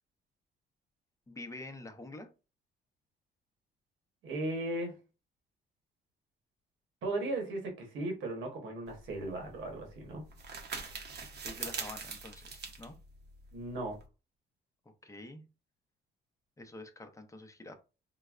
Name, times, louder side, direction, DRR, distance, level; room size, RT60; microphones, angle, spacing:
voice 1, 1.3-2.3 11.4-13.0 15.0-15.4 16.6-17.8, left 2 dB, 15° left, 0.5 m, -47 dB
voice 2, 4.2-4.9 7.0-10.2 13.5-14.0, right 2 dB, 75° right, 1.1 m, -36 dB
sound 1, 8.9-14.1, right 5 dB, 55° right, 0.7 m, -43 dB
3.9 x 2.1 x 2.4 m
cardioid pair, 90°, 20 cm